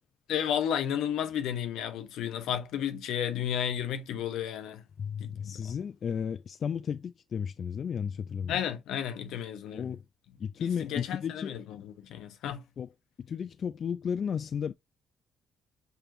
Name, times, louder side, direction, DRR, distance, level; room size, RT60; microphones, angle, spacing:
voice 1, 0.3-4.8 5.2-5.5 8.5-9.9 10.6-12.6, left 9 dB, 85° left, 0.9 m, -32 dB
voice 2, 5.0-8.6 9.7-10.0 10.4-11.6 12.8-12.9 13.2-14.7, left 7 dB, 55° left, 0.3 m, -33 dB
6.8 x 2.9 x 2.5 m
cardioid pair, 90°, 0 cm